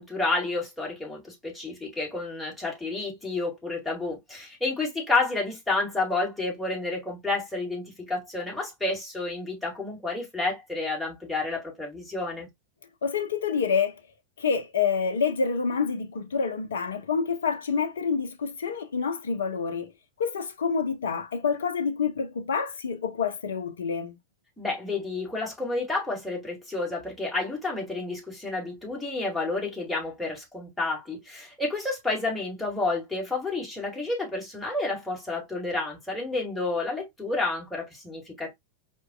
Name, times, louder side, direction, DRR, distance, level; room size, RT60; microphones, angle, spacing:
voice 1, 0.0-12.5 24.6-38.5, left 3 dB, 5° left, 2.0 m, -30 dB
voice 2, 13.0-14.0 14.4-19.9 20.2-24.2, left 6 dB, 65° left, 0.6 m, -27 dB
4.5 x 2.9 x 2.2 m
figure-of-eight pair, 90°, 0 cm